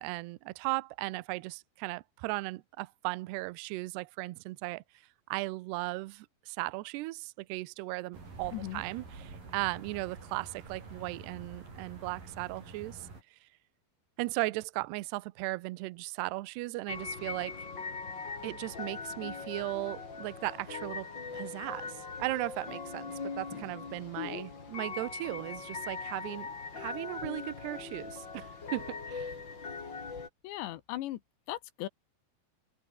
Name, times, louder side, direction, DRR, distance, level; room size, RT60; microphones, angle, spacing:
voice 1, 0.0-4.8 5.3-13.1 14.2-17.7 18.4-26.5 26.7-29.3, right 21 dB, 75° right, 2.6 m, -37 dB
sound 1, 8.1-13.2, right 3 dB, 45° right, 9.5 m, -48 dB
voice 2, 8.5-8.8 24.2-24.5 30.4-31.2 31.5-31.9, left 15 dB, 75° left, 3.2 m, -38 dB
sound 2, 16.9-30.3, left 4 dB, 30° left, 3.1 m, -41 dB
open air
omnidirectional pair, 5.5 m